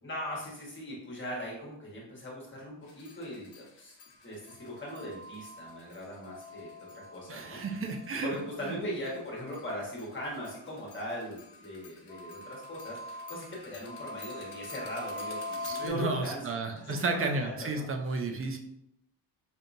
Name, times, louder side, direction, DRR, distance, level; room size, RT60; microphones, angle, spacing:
voice 1, 0.0-4.0 4.2-7.6 8.2-16.4 16.7-18.2, equal, 25° left, -4 dB, 1.3 m, -39 dB
sound 1, 2.9-9.1 9.5-15.9, left 1 dB, 60° left, 0.8 m, -44 dB
voice 2, 7.3-8.3 8.6-8.8 15.6-18.6, right 3 dB, 30° right, 4 dB, 0.5 m, -33 dB
5.2 x 2.7 x 2.6 m, 0.74 s
cardioid pair, 135°, 45 cm